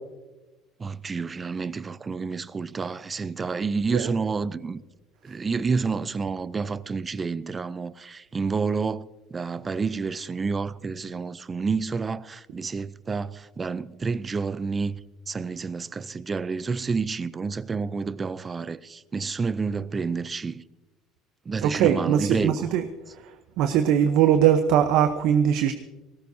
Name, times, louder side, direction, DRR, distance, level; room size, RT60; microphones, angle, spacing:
voice 1, 0.8-4.8 5.2-15.0 15.3-20.6 21.4-22.7, right 4 dB, 20° right, 0.5 m, -29 dB
voice 2, 21.6-22.8 23.1-25.7, right 9 dB, 70° right, 0.8 m, -21 dB
19.5 x 18.0 x 2.8 m
cardioid pair, 135°, 0 cm